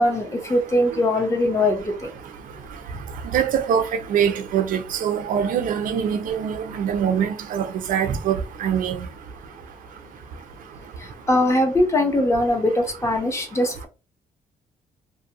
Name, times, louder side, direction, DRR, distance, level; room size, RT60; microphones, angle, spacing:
voice 1, 0.0-2.1 11.3-13.9, left 1 dB, 20° left, 0.7 m, -21 dB
voice 2, 3.3-9.1, right 8 dB, 70° right, 0.5 m, -23 dB
2.6 x 2.1 x 2.8 m
cardioid pair, 120°, 15 cm